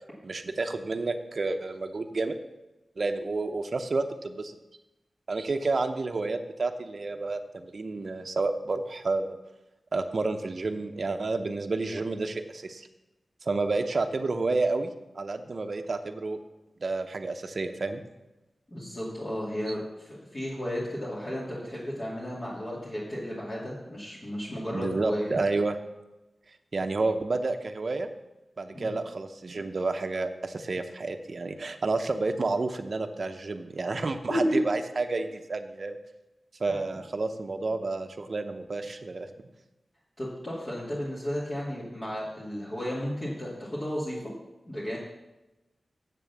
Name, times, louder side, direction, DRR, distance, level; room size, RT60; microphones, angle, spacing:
voice 1, 0.2-2.4 3.0-4.5 5.3-9.4 9.9-12.9 13.4-16.4 16.8-18.0 24.7-25.8 26.7-28.1 28.6-36.0 36.6-39.3, right 3 dB, 55° right, 6 dB, 0.7 m, -30 dB
voice 2, 18.7-25.4 28.7-28.9 34.3-34.6 36.7-36.8 40.2-44.3 44.6-45.0, equal, 35° left, -8 dB, 2.5 m, -33 dB
7.6 x 7.3 x 7.1 m, 1.0 s
wide cardioid pair, 85°, 0 cm